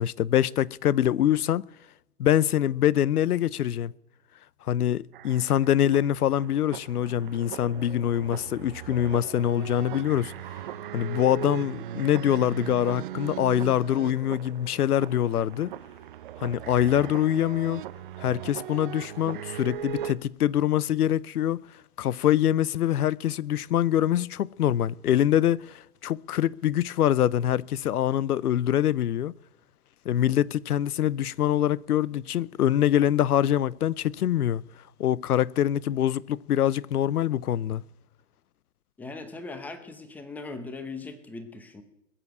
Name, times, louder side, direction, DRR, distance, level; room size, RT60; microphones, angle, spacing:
voice 1, 0.0-1.7 2.2-3.9 4.7-10.3 10.9-15.7 16.4-17.8 18.2-21.6 22.0-29.3 30.1-34.6 35.0-37.8, left 11 dB, 80° left, 0.7 m, -24 dB
sound 1, 5.1-20.2, right 11 dB, 35° right, 0.7 m, -39 dB
voice 2, 39.0-41.8, left 3 dB, 5° left, 0.8 m, -39 dB
21.0 x 7.5 x 8.1 m
hypercardioid pair, 140°, 45 cm